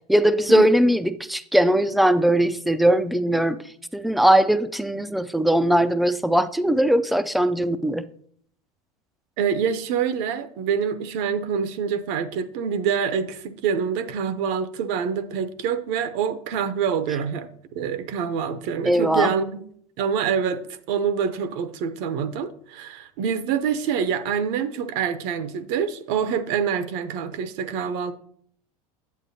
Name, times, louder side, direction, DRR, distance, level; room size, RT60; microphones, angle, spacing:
voice 1, 0.1-8.0 18.9-19.3, right 1 dB, ahead, 13 dB, 0.4 m, -20 dB
voice 2, 9.4-19.6 20.0-28.1, right 7 dB, 60° right, 12 dB, 0.8 m, -26 dB
8.4 x 8.1 x 2.7 m, 0.63 s
hypercardioid pair, 95°, 19 cm